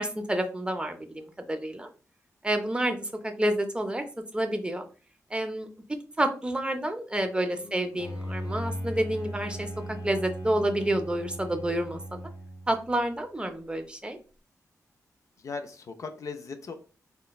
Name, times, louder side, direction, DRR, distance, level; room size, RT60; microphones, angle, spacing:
voice 1, 0.0-1.9 2.4-4.0 4.3-4.8 5.3-5.7 6.2-9.7 10.0-12.2 12.7-14.2, right 1 dB, 15° right, 6 dB, 0.4 m, -29 dB
voice 2, 7.6-8.0 15.4-16.7, left 4 dB, 60° left, 6 dB, 0.4 m, -39 dB
Bowed string instrument, 8.0-12.9, equal, 90° left, 0.8 m, -37 dB
2.9 x 2.1 x 2.3 m, 0.36 s
cardioid pair, 65°, 6 cm